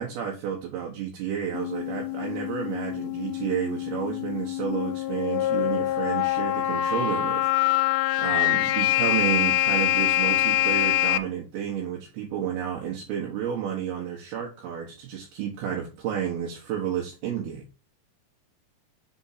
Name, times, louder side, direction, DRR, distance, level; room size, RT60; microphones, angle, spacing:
voice 1, 0.0-7.5 8.2-17.6, right 9 dB, 70° right, 3.2 m, -31 dB
sound 1, 1.5-11.2, left 13 dB, 85° left, 2.8 m, -25 dB
7.1 x 4.3 x 5.8 m
omnidirectional pair, 5.0 m